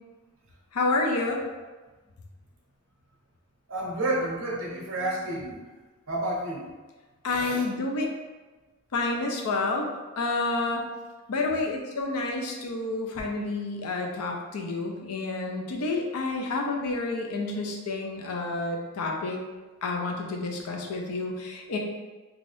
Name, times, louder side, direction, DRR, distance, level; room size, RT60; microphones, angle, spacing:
voice 1, 0.7-1.4 7.2-8.1 8.9-9.9 10.2-10.9 11.3-19.4 19.8-21.8, left 3 dB, 90° left, 2 dB, 0.5 m, -29 dB
voice 2, 3.7-5.6 6.1-6.7 7.2-7.6, right 1 dB, 60° right, -2 dB, 0.7 m, -30 dB
2.5 x 2.4 x 3.2 m, 1.2 s
head